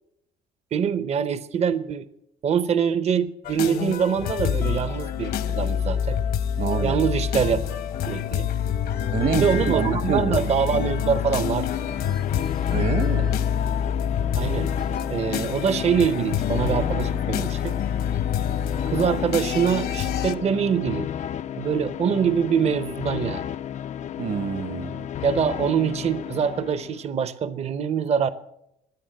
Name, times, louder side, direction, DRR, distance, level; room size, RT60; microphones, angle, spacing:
voice 1, 0.7-2.1 2.4-6.2 6.8-7.6 8.1-8.5 9.3-11.7 14.3-14.7 15.1-17.7 18.8-21.1 21.6-23.4 25.2-28.3, right 7 dB, 40° right, 0.7 m, -24 dB
sound 1, 3.4-20.3, left 8 dB, 65° left, 1.2 m, -26 dB
voice 2, 6.6-7.1 9.1-10.4 12.7-13.3 24.2-25.0, right 6 dB, 55° right, 1.2 m, -27 dB
sound 2, 10.2-27.1, left 9 dB, 45° left, 0.5 m, -33 dB
15.5 x 10.0 x 7.7 m
cardioid pair, 110°, 17 cm